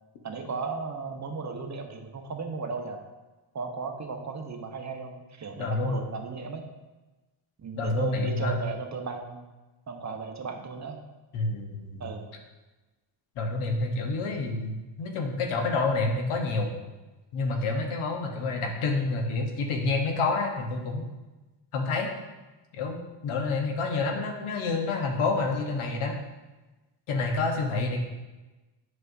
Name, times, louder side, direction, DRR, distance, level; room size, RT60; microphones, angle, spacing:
voice 1, 0.2-3.0 3.5-6.6 7.6-9.4 9.9-11.0 12.0-12.3, right 4 dB, 35° right, 4 dB, 0.9 m, -35 dB
voice 2, 5.6-6.0 7.7-8.6 11.3-12.0 13.4-16.8 17.3-21.1 21.7-22.1 22.7-26.2 27.1-28.0, left 3 dB, 85° left, 2 dB, 1.2 m, -28 dB
8.0 x 5.7 x 2.7 m, 1.2 s
cardioid pair, 85°, 49 cm